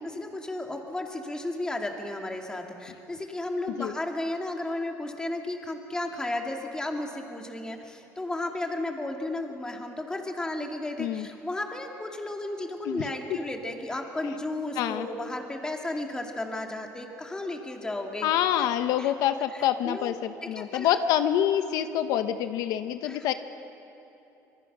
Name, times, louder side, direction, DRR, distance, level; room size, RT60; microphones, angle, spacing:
voice 1, 0.0-18.3 18.6-18.7 19.0-19.1 19.5-20.1 20.4-20.9 23.0-23.3, left 2 dB, 10° left, 2 dB, 2.3 m, -34 dB
voice 2, 14.8-15.1 18.2-23.3, left 10 dB, 75° left, 10 dB, 0.9 m, -26 dB
26.0 x 24.0 x 6.2 m, 2.9 s
cardioid pair, 140°, 6 cm